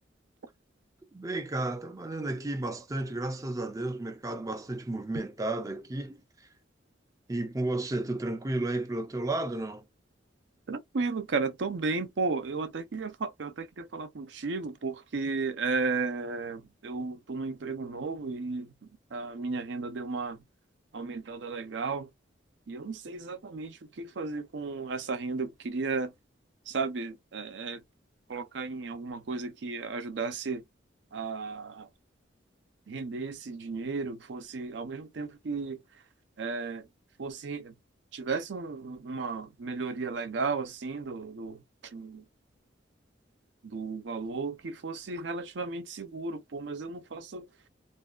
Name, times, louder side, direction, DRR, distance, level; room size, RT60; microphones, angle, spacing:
voice 1, 1.1-6.2 7.3-9.8, right 2 dB, 20° right, 0.4 m, -33 dB
voice 2, 10.7-18.7 19.1-20.4 20.9-22.1 22.7-26.1 26.7-27.8 28.3-30.6 31.1-31.9 32.9-35.8 36.4-36.9 37.2-37.7 38.1-42.2 43.6-47.5, right 4 dB, 70° right, 0.5 m, -34 dB
2.5 x 2.2 x 2.3 m
head